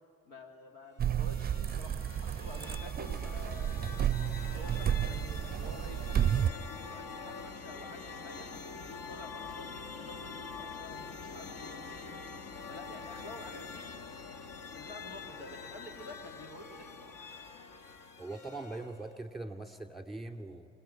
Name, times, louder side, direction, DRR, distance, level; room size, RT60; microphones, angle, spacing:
voice 1, 0.2-3.9 4.5-8.5 8.8-12.2 12.7-14.0 14.5-17.2, left 2 dB, 80° left, 4 dB, 2.7 m, -50 dB
sound 1, 1.0-19.2, left 5 dB, 50° left, 1.5 m, -45 dB
sound 2, 1.0-6.5, right 9 dB, 20° right, 0.6 m, -32 dB
voice 2, 18.2-20.7, right 2 dB, ahead, 6 dB, 2.4 m, -41 dB
26.5 x 20.5 x 9.9 m, 2.5 s
hypercardioid pair, 55°, 43 cm